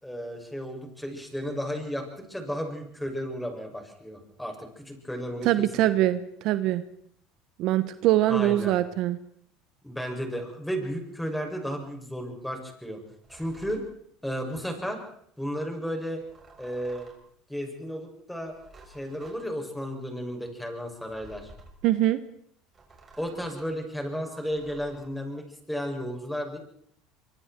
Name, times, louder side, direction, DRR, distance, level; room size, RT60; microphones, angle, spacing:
voice 1, 0.0-5.5 5.9-6.0 8.3-8.8 9.8-13.0 13.3-13.8 14.2-15.0 15.4-16.2 16.6-17.1 17.5-18.5 18.9-21.5 23.2-26.6, equal, 5° left, 3 dB, 7.0 m, -33 dB
voice 2, 5.4-6.8 7.6-9.2 21.8-22.2, right 14 dB, 60° right, 13 dB, 1.2 m, -23 dB
sound 1, 13.2-13.9 16.2-17.3 18.4-19.4 21.1-21.8 22.7-23.7 24.5-25.1, right 3 dB, 30° right, 7.0 m, -52 dB
25.0 x 24.5 x 4.6 m, 0.66 s
supercardioid pair, 90°, 0 cm